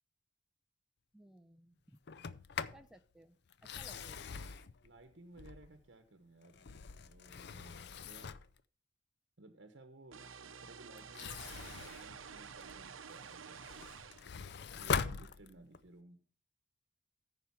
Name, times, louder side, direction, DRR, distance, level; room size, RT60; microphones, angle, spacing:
voice 1, 1.1-2.0 2.7-4.3, right 1 dB, 5° right, 6 dB, 0.4 m, -60 dB
Sliding door, 2.1-2.9 3.5-5.9 6.4-8.6 11.0-12.9 13.4-15.9, left 6 dB, 55° left, 0.5 m, -42 dB
voice 2, 4.8-6.7 7.0-8.3 9.4-13.9 14.7-16.2, right 2 dB, 60° right, 7 dB, 1.0 m, -58 dB
sound 1, 10.1-14.3, right 6 dB, 85° right, 0.7 m, -50 dB
14.0 x 5.0 x 5.7 m, 0.44 s
head